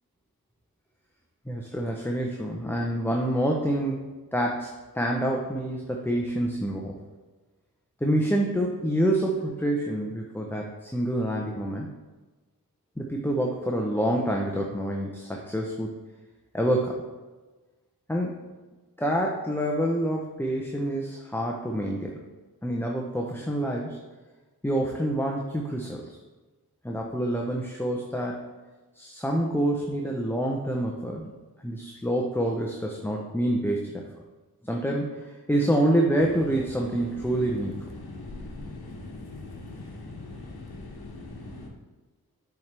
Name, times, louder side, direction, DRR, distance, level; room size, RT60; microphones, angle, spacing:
voice 1, 1.5-4.0 4.3-4.7 4.9-7.0 8.0-11.9 13.0-15.9 16.5-17.0 18.1-18.5 19.0-22.2 22.6-24.0 24.6-26.0 26.8-28.5 28.9-31.3 31.6-34.1 34.6-37.8, right 1 dB, 5° left, -1 dB, 0.7 m, -27 dB
sound 1, 36.2-41.7, left 2 dB, 80° left, 1.0 m, -41 dB
7.0 x 4.5 x 3.4 m, 1.2 s
wide cardioid pair, 60°, 38 cm